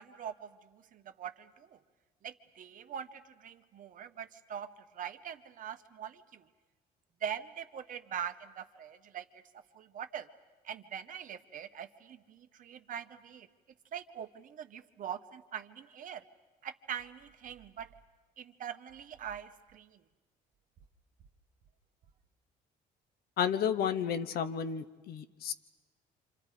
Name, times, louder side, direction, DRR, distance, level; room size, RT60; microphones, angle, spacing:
voice 1, 0.0-1.8 2.2-4.7 4.9-6.5 7.2-9.2 9.7-10.3 10.6-13.5 13.9-16.2 16.6-17.9 18.4-20.0, right 8 dB, 55° right, 8 dB, 1.1 m, -43 dB
voice 2, 23.4-25.5, left 8 dB, 65° left, 11 dB, 1.0 m, -32 dB
28.5 x 26.5 x 5.0 m, 1.3 s
cardioid pair, 110°, 17 cm